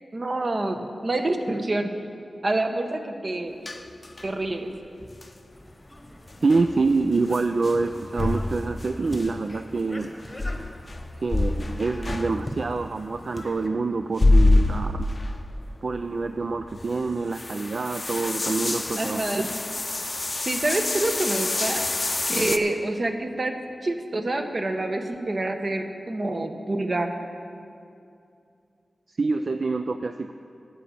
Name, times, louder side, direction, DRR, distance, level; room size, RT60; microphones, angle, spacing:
voice 1, 0.1-1.9 2.4-3.5 4.2-4.7 19.0-19.5 20.4-21.8 22.3-23.5 23.8-27.1, right 2 dB, 45° right, 6 dB, 0.9 m, -27 dB
sound 1, 3.7-4.5 5.0-5.3 6.3-9.7 10.4-12.8 14.0-15.7 16.0-16.1 16.5-22.6, left 2 dB, 35° left, 0.5 m, -26 dB
sound 2, 5.5-13.7, left 1 dB, 15° left, 1.1 m, -43 dB
voice 2, 6.4-10.1 11.2-15.1 15.8-19.2 29.1-30.3, right 3 dB, 60° right, 8 dB, 0.3 m, -26 dB
9.1 x 8.8 x 6.9 m, 2.5 s
wide cardioid pair, 90°, 0 cm